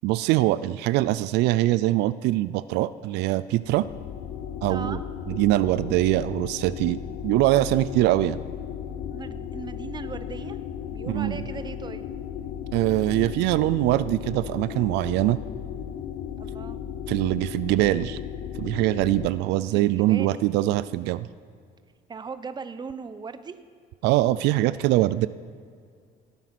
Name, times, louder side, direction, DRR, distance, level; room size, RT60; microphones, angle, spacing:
voice 1, 0.0-3.9 4.6-5.0 5.3-7.0 7.2-8.4 11.1-11.4 12.7-15.4 17.1-18.2 18.6-21.3 24.0-25.3, right 16 dB, 90° right, 15 dB, 0.4 m, -23 dB
sound 1, 3.5-19.3, left 8 dB, 75° left, 1.0 m, -35 dB
voice 2, 4.7-5.0 8.9-10.6 10.9-12.0 16.4-16.8 19.7-20.4 22.1-23.6, right 5 dB, 25° right, 12 dB, 0.8 m, -38 dB
17.5 x 9.2 x 5.9 m, 2.2 s
cardioid pair, 110°, 17 cm